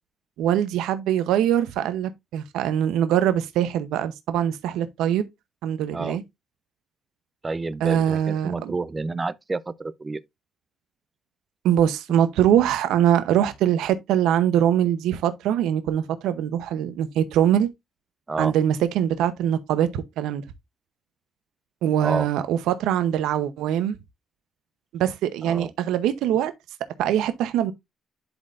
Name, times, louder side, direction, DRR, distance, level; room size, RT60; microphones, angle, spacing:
voice 1, 0.4-5.2 5.6-6.2 7.8-8.7 11.6-17.7 18.4-20.4 21.8-24.0 24.9-26.5 27.0-27.7, right 10 dB, 90° right, 0.8 m, -22 dB
voice 2, 7.4-10.2 18.3-18.5 22.0-22.3 25.4-25.7, right 3 dB, 25° right, 0.6 m, -29 dB
11.0 x 4.3 x 2.5 m
cardioid pair, 90°, 0 cm